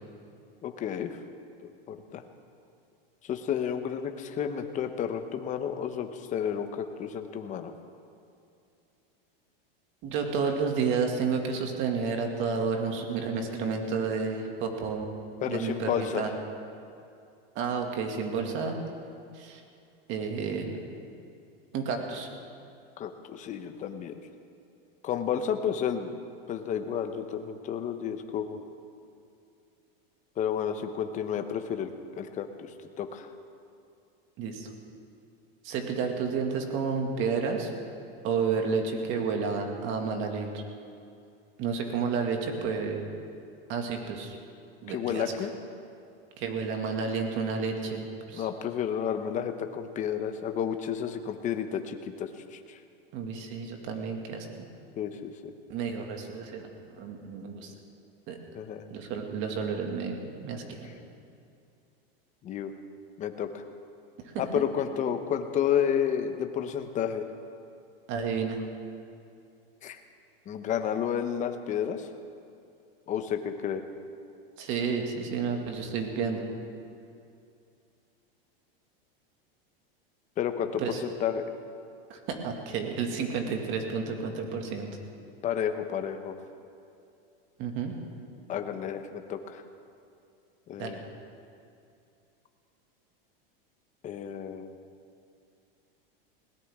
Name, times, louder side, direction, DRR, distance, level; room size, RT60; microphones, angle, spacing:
voice 1, 0.6-1.2 1.6-2.2 3.2-7.7 15.4-16.3 23.0-24.3 25.0-26.2 26.5-28.6 30.4-31.9 32.2-33.3 44.9-45.5 48.3-52.8 55.0-55.5 58.5-58.9 60.8-60.9 62.4-62.7 63.2-63.6 64.4-67.3 69.8-70.0 70.5-72.1 73.1-73.8 80.4-81.4 85.4-86.4 88.5-89.6 90.7-91.0 94.0-94.8, left 8 dB, 25° left, 7 dB, 0.9 m, -31 dB
voice 2, 10.0-15.1 15.4-16.3 17.6-18.8 19.3-19.6 20.1-20.9 21.7-22.3 34.4-34.7 35.6-37.7 38.2-40.6 41.6-43.1 43.7-44.4 44.8-45.2 46.4-48.0 48.3-48.5 53.1-54.6 55.7-57.7 58.3-58.4 58.9-60.9 64.2-64.4 68.1-68.6 74.6-76.5 80.8-81.0 82.1-85.0 87.6-87.9 90.8-91.0, right 5 dB, 40° right, 3 dB, 2.1 m, -31 dB
20.0 x 18.5 x 3.7 m, 2.6 s
supercardioid pair, 145°, 30 cm